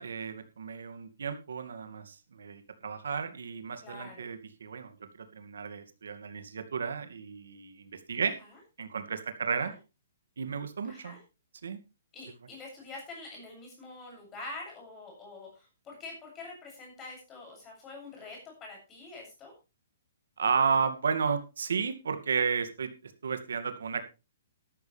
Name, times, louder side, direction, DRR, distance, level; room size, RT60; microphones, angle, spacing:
voice 1, 0.0-4.9 5.2-8.3 8.8-9.7 10.4-11.1 11.6-11.8 20.4-24.0, right 6 dB, 90° right, 8 dB, 2.3 m, -33 dB
voice 2, 3.8-4.3 8.5-8.6 9.6-9.8 10.9-11.2 12.1-19.5, left 3 dB, 15° left, 0 dB, 7.5 m, -45 dB
13.5 x 13.0 x 3.5 m, 0.30 s
hypercardioid pair, 170°, 0 cm